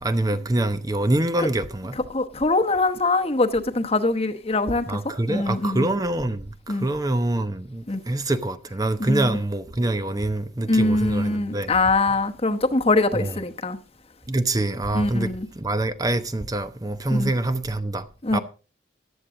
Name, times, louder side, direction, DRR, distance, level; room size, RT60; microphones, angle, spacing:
voice 1, 0.0-2.0 4.9-11.7 13.1-13.4 14.3-18.1 18.3-18.4, right 2 dB, 20° right, 0.8 m, -25 dB
voice 2, 2.1-5.0 5.3-5.9 6.7-6.9 7.9-8.0 9.0-9.4 10.7-13.8 14.9-15.5 17.1-17.3 18.2-18.4, left 2 dB, 30° left, 1.1 m, -23 dB
14.5 x 11.5 x 3.8 m
head